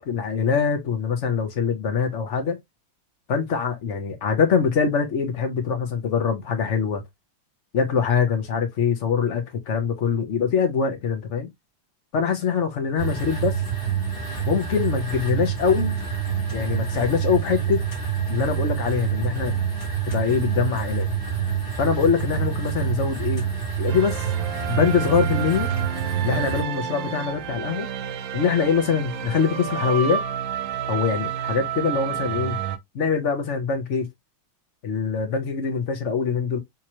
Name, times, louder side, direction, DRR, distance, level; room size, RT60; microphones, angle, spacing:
voice 1, 0.1-2.6 3.3-7.0 7.7-11.5 12.1-13.6 14.4-16.0 16.5-17.8 18.3-19.5 20.1-21.1 21.8-23.4 23.8-24.3 24.7-25.7 26.2-27.9 28.3-30.2 30.9-32.6 32.9-34.1 34.8-36.6, left 6 dB, 50° left, 0.9 m, -23 dB
sound 1, 13.0-26.6, right 8 dB, 30° left, 1.4 m, -27 dB
sound 2, 23.9-32.8, right 9 dB, 80° right, 1.3 m, -30 dB
3.6 x 3.0 x 2.9 m
omnidirectional pair, 2.2 m